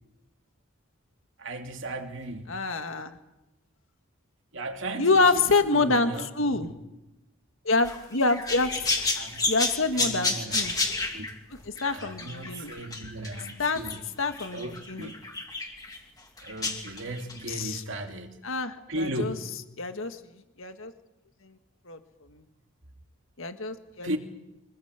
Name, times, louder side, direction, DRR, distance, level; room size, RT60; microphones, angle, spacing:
voice 1, 1.4-2.5 4.5-5.1 5.3-6.7 9.2-9.5 9.9-10.7 11.1-11.3 11.8-14.0 14.5-15.2 16.4-18.4 18.9-19.5 24.0-24.2, right 1 dB, 60° right, 4 dB, 2.7 m, -36 dB
voice 2, 2.5-3.2 5.0-6.7 7.7-8.8 9.5-10.7 11.8-12.7 13.6-13.8 14.2-15.1 17.5-17.8 18.4-19.3 19.8-20.2 20.6-20.9 21.9-22.0 23.4-24.2, left 3 dB, 70° left, 8 dB, 1.8 m, -26 dB
sound 1, 7.8-14.0 14.3-16.0 16.4-17.6, left 3 dB, 15° left, 2.7 m, -31 dB
25.0 x 20.5 x 8.2 m, 0.97 s
head